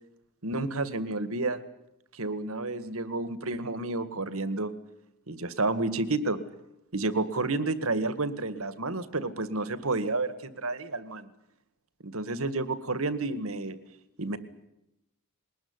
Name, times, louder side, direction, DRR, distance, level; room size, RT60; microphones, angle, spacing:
voice 1, 0.4-1.6 2.1-4.7 5.3-6.4 6.9-11.3 12.0-13.8 14.2-14.4, right 2 dB, 70° right, 13 dB, 1.9 m, -30 dB
21.5 x 19.5 x 9.7 m, 0.85 s
head